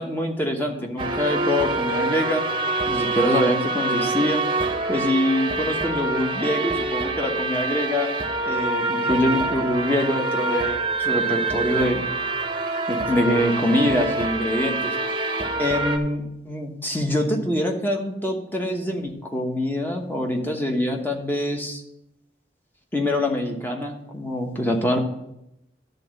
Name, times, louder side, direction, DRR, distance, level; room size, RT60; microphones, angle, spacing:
voice 1, 0.0-2.4 2.9-4.4 4.9-8.1 8.5-12.0 12.9-14.8 15.6-21.8 22.9-25.0, left 1 dB, 10° left, 2 dB, 1.1 m, -24 dB
sound 1, 1.0-16.0, right 2 dB, 30° right, 0.9 m, -25 dB
11.5 x 4.0 x 7.5 m, 0.83 s
head